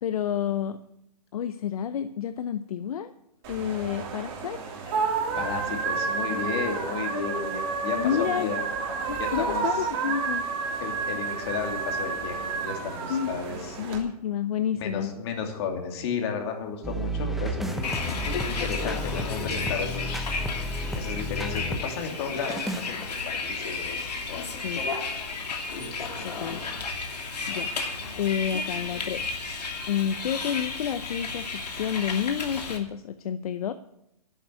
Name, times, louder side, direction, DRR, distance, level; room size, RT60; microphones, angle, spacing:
voice 1, 0.0-0.8 1.3-3.1 3.5-4.6 8.0-8.5 9.1-10.4 13.1-13.3 13.8-15.1 24.6-24.8 26.2-26.6 27.5-27.8 28.2-29.4 29.9-33.7, left 9 dB, 65° left, 11 dB, 0.7 m, -29 dB
sound 1, 3.4-14.0, right 5 dB, 35° right, 3.0 m, -30 dB
voice 2, 5.4-8.6 9.2-9.9 10.8-13.8 14.8-17.9 18.5-20.3 20.9-24.5 26.0-26.6, left 6 dB, 40° left, 3 dB, 2.8 m, -33 dB
sound 2, 16.8-21.9 22.4-22.9, equal, ahead, 0.8 m, -32 dB
Bus, 17.8-32.8, left 4 dB, 85° left, 2.7 m, -33 dB
11.5 x 8.1 x 9.0 m, 0.82 s
hypercardioid pair, 150°, 20 cm